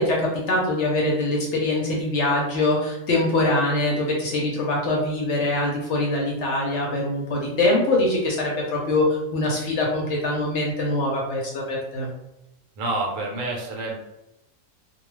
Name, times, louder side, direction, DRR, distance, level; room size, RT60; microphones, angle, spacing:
voice 1, 0.0-12.1, left 2 dB, 65° left, -2 dB, 0.8 m, -23 dB
voice 2, 12.8-14.0, right 2 dB, 70° right, -1 dB, 1.0 m, -28 dB
2.3 x 2.2 x 3.1 m, 0.91 s
omnidirectional pair, 1.5 m